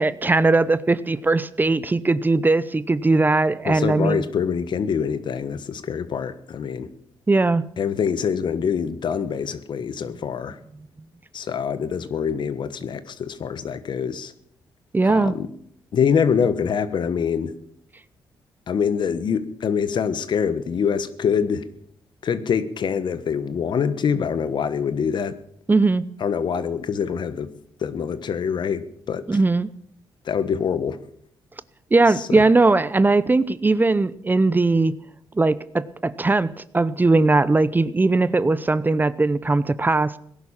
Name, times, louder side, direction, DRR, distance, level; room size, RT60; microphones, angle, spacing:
voice 1, 0.0-4.2 7.3-7.6 14.9-15.3 25.7-26.1 29.3-29.7 31.9-34.9 35.4-40.2, right 3 dB, 20° right, 17 dB, 0.7 m, -19 dB
voice 2, 3.6-6.9 7.8-10.6 11.3-14.3 15.0-15.5 15.9-17.5 18.7-21.6 22.2-25.3 26.2-27.5 27.8-29.4 30.2-31.0 32.2-32.4, left 7 dB, 60° left, 13 dB, 1.3 m, -25 dB
17.5 x 11.0 x 7.3 m, 0.67 s
cardioid pair, 80°, 9 cm